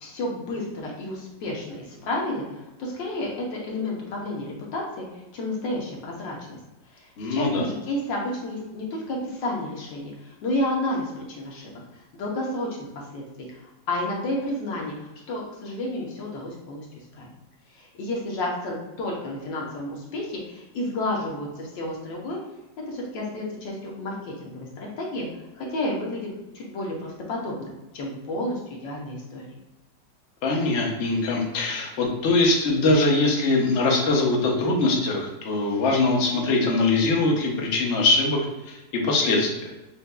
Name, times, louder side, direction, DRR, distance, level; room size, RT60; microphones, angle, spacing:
voice 1, 0.0-6.6 6.9-11.7 12.1-12.9 13.1-13.6 13.9-16.9 17.1-17.3 17.7-22.4 22.9-25.3 25.6-26.3 26.5-27.7 27.9-29.4, left 1 dB, 85° left, -2 dB, 1.6 m, -31 dB
voice 2, 7.2-7.6 30.4-38.4 38.7-39.7, left 2 dB, 50° left, -1 dB, 0.9 m, -22 dB
6.1 x 2.6 x 2.2 m, 1.0 s
omnidirectional pair, 1.9 m